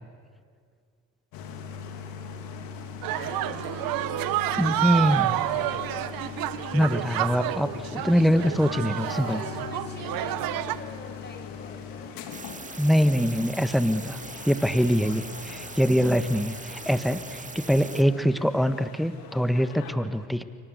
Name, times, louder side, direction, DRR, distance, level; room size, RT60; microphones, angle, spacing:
sound 1, 1.3-19.9, left 6 dB, 85° left, 2.8 m, -41 dB
voice 1, 3.0-3.8 9.0-12.1 17.5-17.6, left 3 dB, 30° left, 5 dB, 6.4 m, -43 dB
sound 2, 3.0-10.8, right 14 dB, 75° right, 1.1 m, -29 dB
voice 2, 4.5-5.4 6.7-9.4 12.8-14.2 14.4-20.4, equal, ahead, 11 dB, 1.5 m, -24 dB
Sine noise (mono & stereo), 12.3-18.0, right 3 dB, 20° right, 2.2 m, -41 dB
29.5 x 23.5 x 8.2 m, 2.1 s
supercardioid pair, 70°, 35 cm